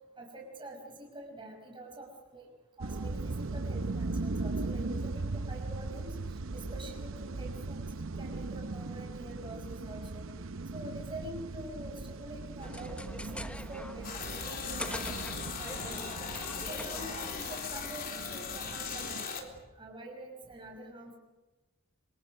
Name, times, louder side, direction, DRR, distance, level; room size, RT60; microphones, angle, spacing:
voice 1, 0.2-2.5 2.8-10.3 10.7-16.0 16.7-21.2, right 1 dB, 25° right, 1 dB, 5.5 m, -46 dB
sound 1, 2.8-19.2, right 3 dB, 70° right, 0.8 m, -39 dB
sound 2, 12.6-17.6, left 1 dB, 5° left, 1.0 m, -44 dB
sound 3, 14.0-19.4, left 6 dB, 45° left, 3.7 m, -39 dB
26.5 x 26.0 x 6.5 m, 1.2 s
head